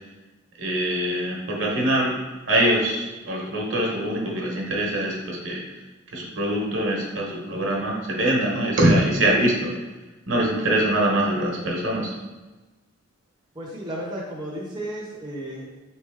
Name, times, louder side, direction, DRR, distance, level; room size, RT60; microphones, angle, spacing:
voice 1, 0.6-2.1 2.5-5.6 6.1-9.7 10.3-12.1, right 1 dB, 65° right, -1 dB, 1.0 m, -23 dB
voice 2, 13.5-15.8, right 1 dB, 20° right, -5 dB, 0.7 m, -33 dB
4.0 x 3.2 x 3.5 m, 1.2 s
head